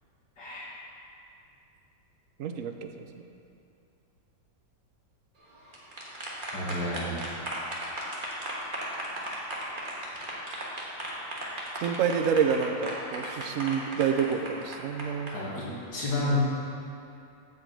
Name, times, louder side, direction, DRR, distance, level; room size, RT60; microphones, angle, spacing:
voice 1, 2.4-3.2 11.8-15.3, right 7 dB, 75° right, 6 dB, 0.7 m, -28 dB
sound 1, 5.5-15.3, right 1 dB, 30° right, 1.4 m, -36 dB
voice 2, 6.5-7.1 15.3-15.7 15.9-16.4, left 1 dB, 65° left, -7 dB, 2.8 m, -30 dB
9.1 x 5.1 x 7.6 m, 2.6 s
omnidirectional pair, 2.0 m